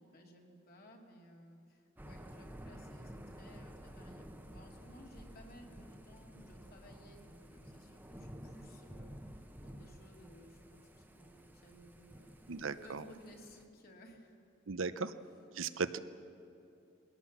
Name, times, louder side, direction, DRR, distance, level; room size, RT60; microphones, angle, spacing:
voice 1, 0.0-9.3 9.6-12.4 12.8-14.4, equal, 50° left, 1 dB, 2.6 m, -58 dB
Thunder / Rain, 2.0-13.7, equal, 10° right, 0.9 m, -52 dB
voice 2, 12.5-13.0 14.7-15.1 15.5-16.0, right 4 dB, 80° right, 12 dB, 0.7 m, -37 dB
21.0 x 17.5 x 7.3 m, 2.8 s
head